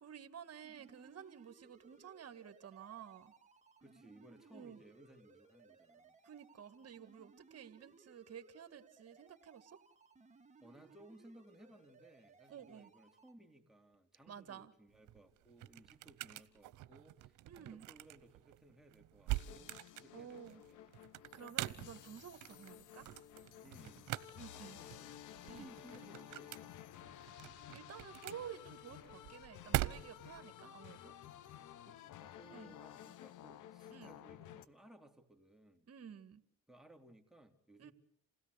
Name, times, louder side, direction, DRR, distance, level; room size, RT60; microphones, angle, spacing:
voice 1, 0.0-3.3 4.5-4.8 6.2-9.8 12.5-12.9 14.3-14.7 17.5-17.9 20.1-20.6 21.3-23.1 24.3-24.8 25.5-25.7 27.2-27.3 27.7-31.1 32.5-32.7 33.9-34.1 35.9-36.4 37.8-37.9, right 8 dB, 55° right, 1.9 m, -52 dB
sound 1, 0.6-13.3, right 4 dB, 25° right, 2.2 m, -64 dB
voice 2, 3.8-6.2 10.6-21.0 23.6-24.2 24.5-26.8 31.8-35.9 36.7-37.9, right 1 dB, ahead, 3.2 m, -61 dB
sound 2, 14.9-30.4, right 16 dB, 90° right, 0.9 m, -44 dB
sound 3, 19.3-34.6, left 11 dB, 80° left, 1.1 m, -54 dB
28.0 x 17.0 x 8.2 m
cardioid pair, 90°, 30 cm